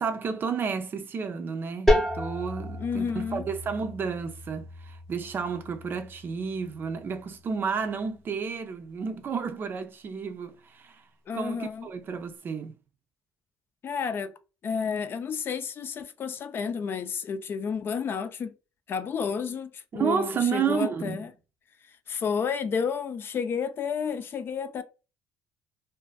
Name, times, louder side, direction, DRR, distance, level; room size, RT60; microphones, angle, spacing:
voice 1, 0.0-11.0 11.3-12.8 19.9-21.3, right 6 dB, 40° right, 0.4 m, -31 dB
sound 1, 1.9-7.4, left 1 dB, 5° left, 0.8 m, -31 dB
voice 2, 2.8-3.4 11.3-11.9 13.8-14.3 14.6-18.5 18.9-21.3 22.1-24.8, left 6 dB, 45° left, 0.4 m, -31 dB
2.5 x 2.4 x 2.3 m
cardioid pair, 105°, 5 cm